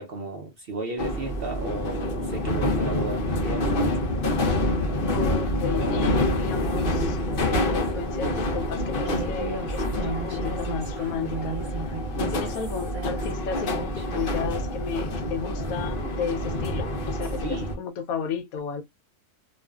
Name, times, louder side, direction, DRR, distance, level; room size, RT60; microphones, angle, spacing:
voice 1, 0.0-3.9 5.0-5.1 12.4-12.5 17.4-17.8, right 3 dB, 70° right, 0.5 m, -34 dB
sound 1, 1.0-17.8, left 1 dB, 55° left, 0.6 m, -27 dB
voice 2, 5.1-11.8 12.2-18.8, left 6 dB, 75° left, 1.0 m, -33 dB
Human voice, 9.0-14.3, right 3 dB, 30° right, 0.9 m, -37 dB
2.5 x 2.4 x 2.2 m
omnidirectional pair, 1.6 m